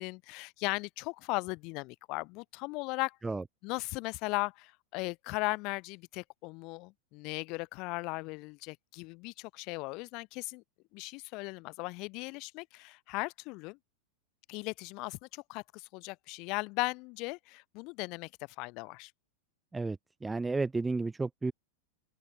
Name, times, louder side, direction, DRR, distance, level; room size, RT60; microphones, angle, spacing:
voice 1, 0.0-3.2 3.6-10.6 10.9-13.8 14.5-18.3 18.6-19.1, left 26 dB, 40° left, 2.2 m, -37 dB
voice 2, 19.7-21.5, right 3 dB, 10° right, 2.3 m, -32 dB
open air
figure-of-eight pair, 90°, 0 cm